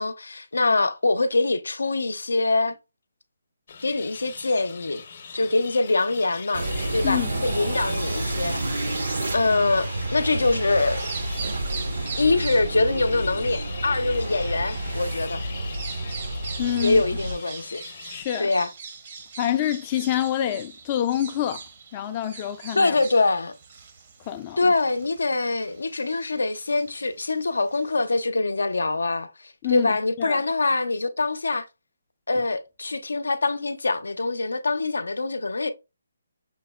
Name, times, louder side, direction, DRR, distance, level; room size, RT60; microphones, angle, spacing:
voice 1, 0.0-2.8 3.8-5.0 5.3-9.1 9.3-11.0 12.2-15.4 16.8-17.8 18.1-18.7 22.7-23.5 24.6-31.7 32.3-35.7, left 3 dB, 90° left, 0.5 m, -24 dB
sound 1, 3.7-18.2, left 6 dB, 50° left, 0.7 m, -42 dB
sound 2, 6.5-17.4, right 2 dB, 80° right, 0.9 m, -30 dB
Bird vocalization bird call bird song, 10.9-28.2, right 5 dB, 45° right, 0.7 m, -42 dB
voice 2, 16.6-17.0 18.1-18.5 19.4-21.6 21.9-23.0 24.3-24.7 29.6-30.4, left 11 dB, 25° left, 0.3 m, -27 dB
5.7 x 2.0 x 2.2 m
hypercardioid pair, 160°, 0 cm